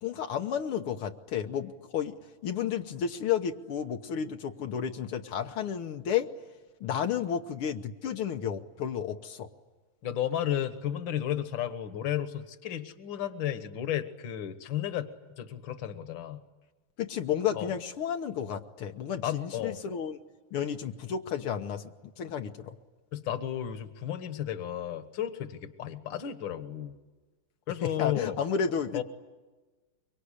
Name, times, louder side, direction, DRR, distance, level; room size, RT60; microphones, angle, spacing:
voice 1, 0.0-2.1 2.4-6.3 6.8-9.5 17.0-20.2 20.5-21.9 22.2-22.8 27.8-29.0, left 8 dB, 85° left, 4 dB, 2.0 m, -32 dB
voice 2, 10.0-15.1 15.4-16.4 17.5-17.7 19.2-19.8 23.1-27.0 27.7-28.4 28.9-29.0, left 10 dB, 60° left, 10 dB, 2.0 m, -33 dB
25.0 x 24.0 x 10.0 m, 1.2 s
omnidirectional pair, 2.4 m